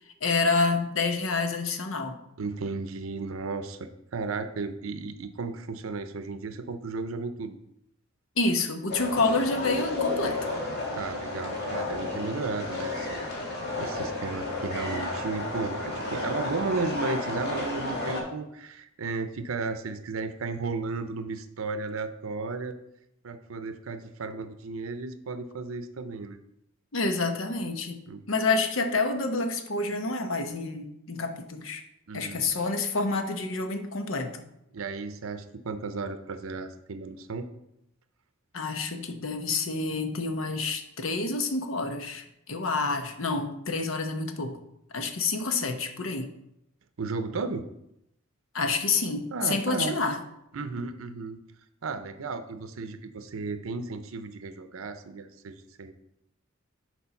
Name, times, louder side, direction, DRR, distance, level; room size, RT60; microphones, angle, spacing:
voice 1, 0.2-2.2 8.4-10.4 26.9-28.0 28.3-31.8 32.1-34.5 38.5-44.6 44.9-46.3 48.5-50.2, left 3 dB, 75° left, 7 dB, 0.9 m, -28 dB
voice 2, 2.4-3.8 4.1-7.6 10.9-13.2 13.5-22.8 23.2-26.4 28.1-28.2 32.1-32.4 34.7-37.5 47.0-47.6 49.3-50.0 50.5-51.4 51.8-55.9, right 4 dB, 85° right, 9 dB, 0.6 m, -34 dB
sound 1, 8.9-18.2, left 2 dB, 55° left, 2.0 m, -32 dB
6.9 x 4.6 x 5.8 m, 0.82 s
head